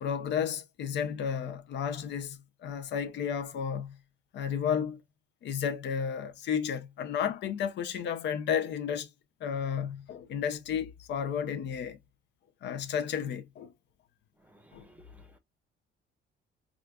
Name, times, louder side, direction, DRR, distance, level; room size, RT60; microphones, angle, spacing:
voice 1, 0.0-3.9 4.3-5.0 5.4-9.1 9.4-12.0 12.6-13.7 14.7-14.9, left 8 dB, 65° left, 0.6 m, -32 dB
voice 2, 14.5-15.4, right 1 dB, 10° right, 0.7 m, -58 dB
4.9 x 2.4 x 2.2 m
cardioid pair, 140°, 20 cm